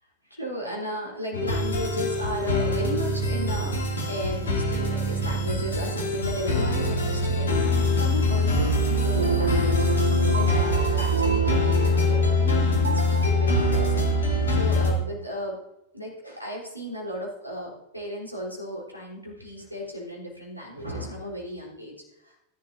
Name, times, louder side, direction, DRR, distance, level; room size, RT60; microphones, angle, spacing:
voice 1, 0.2-9.7 10.3-15.6 15.9-22.4, equal, 90° left, -5 dB, 3.6 m, -35 dB
sound 1, 1.3-14.9, left 1 dB, 70° left, 2.6 m, -24 dB
sound 2, 9.1-14.6, right 5 dB, 70° right, 0.6 m, -30 dB
15.5 x 11.0 x 2.7 m, 0.90 s
figure-of-eight pair, 90°, 0 cm